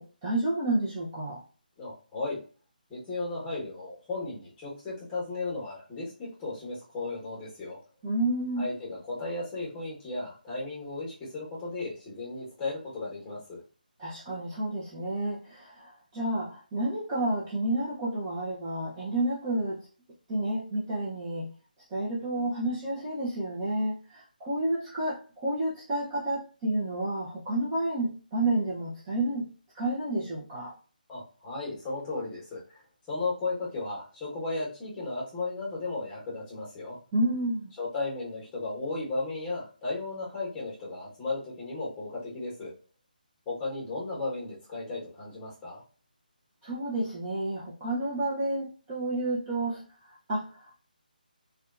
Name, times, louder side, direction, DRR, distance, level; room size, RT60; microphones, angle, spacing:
voice 1, 0.0-1.4 8.0-8.7 14.0-19.8 20.3-21.5 21.9-29.5 29.7-30.7 37.1-37.7 46.6-49.8 50.3-50.7, right 1 dB, 20° right, -7 dB, 0.6 m, -30 dB
voice 2, 1.8-2.4 2.9-7.8 8.6-13.6 31.1-32.8 33.1-37.0 37.8-42.7 43.5-45.8, left 3 dB, 15° left, -6 dB, 1.0 m, -35 dB
2.7 x 2.2 x 2.4 m, 0.38 s
figure-of-eight pair, 150°, 5 cm